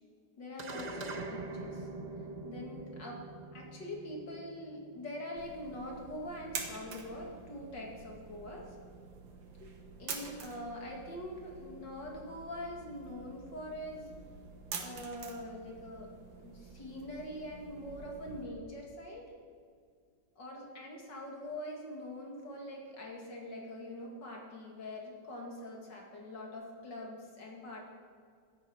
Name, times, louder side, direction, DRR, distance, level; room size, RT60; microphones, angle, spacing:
voice 1, 0.4-1.9 2.4-8.8 9.6-9.7 10.0-14.1 14.8-16.1 16.4-19.3 20.4-27.9, left 1 dB, 70° left, -1 dB, 3.0 m, -44 dB
sound 1, 0.6-5.2, right 2 dB, 45° right, 0.5 m, -43 dB
sound 2, 5.4-18.4, right 5 dB, 90° right, 2.2 m, -47 dB
12.0 x 10.5 x 7.8 m, 2.2 s
omnidirectional pair, 2.0 m